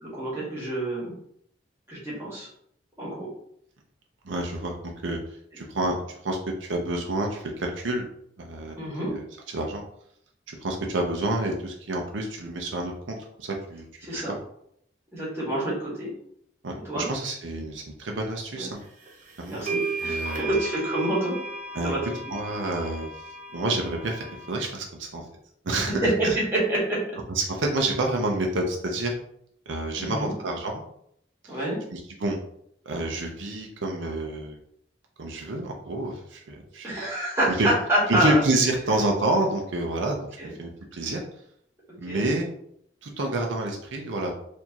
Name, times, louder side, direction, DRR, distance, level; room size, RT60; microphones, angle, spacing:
voice 1, 0.0-1.1 1.9-2.5 3.0-3.3 8.7-9.1 14.0-14.3 15.1-16.1 16.9-17.1 18.6-18.7 19.5-21.4 21.8-22.0 25.7-27.0 30.0-30.3 31.5-31.8 36.8-38.4 40.4-40.5 42.0-42.2, right 1 dB, 15° right, -6 dB, 1.5 m, -27 dB
voice 2, 4.2-5.2 5.5-8.1 8.4-8.8 9.0-9.8 10.5-13.9 14.1-14.4 16.6-18.8 19.4-19.7 20.0-20.5 21.7-21.9 22.3-23.1 23.5-25.3 25.6-26.4 27.3-29.2 29.7-30.8 31.4-31.6 31.9-32.4 32.9-34.6 35.2-36.9 37.5-37.7 38.1-41.2 42.0-42.5 43.0-44.3, right 2 dB, 80° right, 1 dB, 0.6 m, -28 dB
sound 1, 19.1-19.2 19.7-24.5, right 3 dB, 45° right, 0.7 m, -34 dB
4.5 x 2.7 x 2.9 m, 0.70 s
head